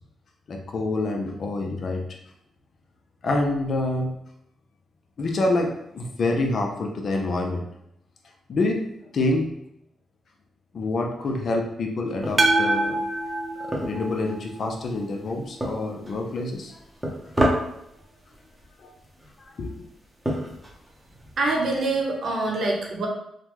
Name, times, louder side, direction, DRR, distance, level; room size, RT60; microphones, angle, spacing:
voice 1, 0.5-2.2 3.2-4.2 5.2-7.7 8.5-8.9 9.1-9.5 10.7-13.0 13.6-16.8 18.8-18.9 19.6-19.9, left 2 dB, 55° left, 2 dB, 0.5 m, -27 dB
sound 1, 12.2-21.6, right 1 dB, 10° right, 0.8 m, -32 dB
sound 2, 12.4-14.6, right 2 dB, 35° right, 0.3 m, -24 dB
voice 2, 21.4-23.1, right 2 dB, 60° right, -1 dB, 0.8 m, -25 dB
3.2 x 2.2 x 3.0 m, 0.77 s
cardioid pair, 85°, 0 cm